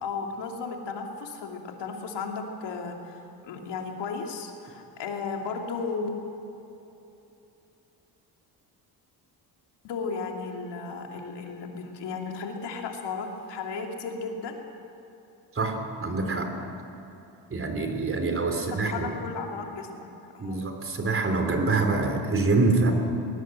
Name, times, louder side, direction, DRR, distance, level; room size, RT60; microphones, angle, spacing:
voice 1, 0.0-6.1 9.8-14.6 18.5-20.1 20.3-20.6, left 4 dB, 80° left, 2 dB, 3.0 m, -35 dB
voice 2, 15.6-16.5 17.5-19.1 20.4-22.9, right 3 dB, 30° right, 4 dB, 3.4 m, -25 dB
21.0 x 20.0 x 7.8 m, 3.0 s
cardioid pair, 115°, 41 cm